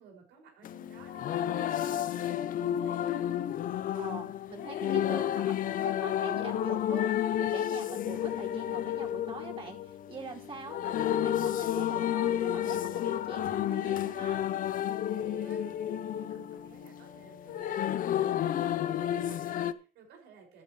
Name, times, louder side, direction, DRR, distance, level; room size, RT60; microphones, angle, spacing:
voice 1, 0.0-3.0 15.1-20.6, right 5 dB, 85° right, 1 dB, 6.0 m, -55 dB
sound 1, 0.6-19.7, left 11 dB, 55° left, 0.7 m, -31 dB
voice 2, 4.0-14.4, right 4 dB, 35° right, 0 dB, 4.2 m, -44 dB
13.0 x 11.0 x 3.2 m, 0.35 s
cardioid pair, 110°, 17 cm